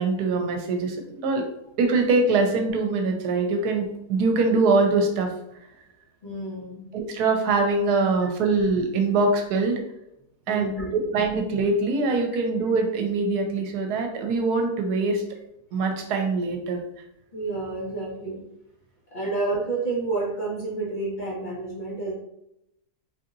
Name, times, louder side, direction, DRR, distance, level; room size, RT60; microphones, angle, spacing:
voice 1, 0.0-1.5 1.8-5.3 6.9-9.8 10.5-15.2 15.7-16.8, right 3 dB, 80° right, 4 dB, 1.2 m, -23 dB
voice 2, 6.2-6.9 10.5-11.1 17.3-18.4 19.1-22.1, right 3 dB, 30° left, -7 dB, 1.3 m, -30 dB
4.1 x 2.7 x 2.5 m, 0.82 s
omnidirectional pair, 1.7 m